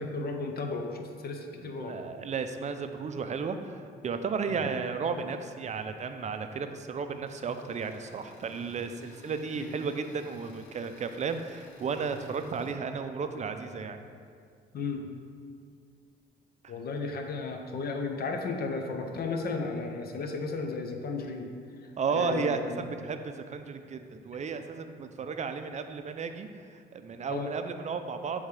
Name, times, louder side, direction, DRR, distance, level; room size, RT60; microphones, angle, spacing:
voice 1, 0.0-2.0 4.5-4.6 9.6-9.7 14.7-15.1 16.7-21.5 21.8-22.9 27.3-27.5, left 3 dB, 50° left, 4 dB, 0.6 m, -34 dB
voice 2, 1.6-14.0 16.6-16.7 22.0-28.5, right 5 dB, 35° right, 8 dB, 0.4 m, -34 dB
sound 1, 7.2-12.7, left 3 dB, 85° left, 0.8 m, -56 dB
8.2 x 3.5 x 3.3 m, 2.2 s
cardioid pair, 90°, 20 cm